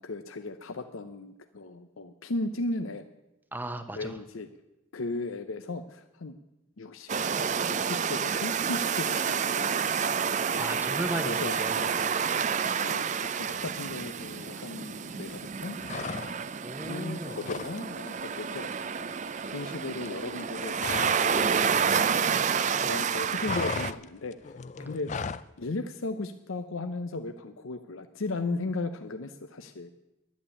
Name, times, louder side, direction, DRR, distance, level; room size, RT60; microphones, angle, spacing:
voice 1, 0.0-3.0 3.9-4.5 4.9-6.3 6.8-7.1 7.7-10.1 11.2-12.0 12.7-15.8 16.8-22.3 22.9-24.5 24.8-25.3 25.6-29.9, left 2 dB, 85° left, 7 dB, 0.7 m, -36 dB
voice 2, 3.5-4.2 10.5-11.8 16.6-17.3 22.7-22.9 24.8-24.9, right 1 dB, 10° right, 8 dB, 0.9 m, -36 dB
sound 1, 7.1-23.9, right 6 dB, 35° right, 0.4 m, -29 dB
sound 2, 15.8-16.6 16.9-17.8 18.1-18.3 18.6-21.3 21.6-22.7 22.9-25.5, left 5 dB, 35° left, 0.4 m, -37 dB
12.0 x 9.4 x 8.6 m, 0.96 s
head